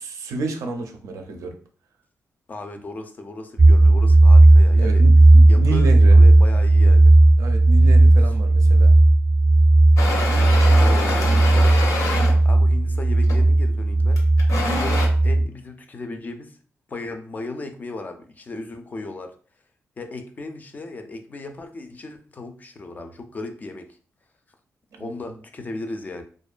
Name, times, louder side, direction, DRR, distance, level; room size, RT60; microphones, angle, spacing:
voice 1, 0.0-1.6 4.8-6.2 7.4-8.9 10.4-10.8 11.1-11.5 14.5-14.7 25.0-25.3, right 3 dB, 85° right, 4 dB, 0.5 m, -31 dB
voice 2, 2.5-5.0 5.5-7.1 10.7-11.9 12.2-14.2 14.7-16.6 16.9-19.3 20.0-23.9 25.0-26.2, left 2 dB, 30° left, 6 dB, 0.3 m, -36 dB
sound 1, 3.6-15.5, right 2 dB, 25° right, 0.5 m, -14 dB
sound 2, 10.0-12.4 13.2-13.5 14.2-15.1, left 3 dB, 80° left, 0.6 m, -26 dB
2.4 x 2.1 x 2.4 m, 0.42 s
wide cardioid pair, 135°, 5 cm